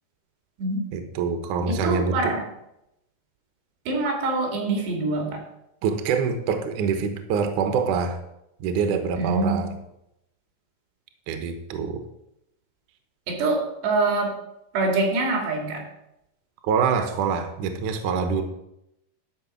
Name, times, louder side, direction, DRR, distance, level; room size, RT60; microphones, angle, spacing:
voice 1, 0.9-2.2 5.8-8.2 8.6-9.7 11.3-12.0 16.6-18.4, right 6 dB, 85° right, 7 dB, 1.7 m, -25 dB
voice 2, 1.7-2.4 3.9-5.4 9.1-9.6 13.3-14.3 14.7-15.8, right 2 dB, 65° right, 2 dB, 4.4 m, -25 dB
12.0 x 6.0 x 7.3 m, 0.83 s
omnidirectional pair, 5.6 m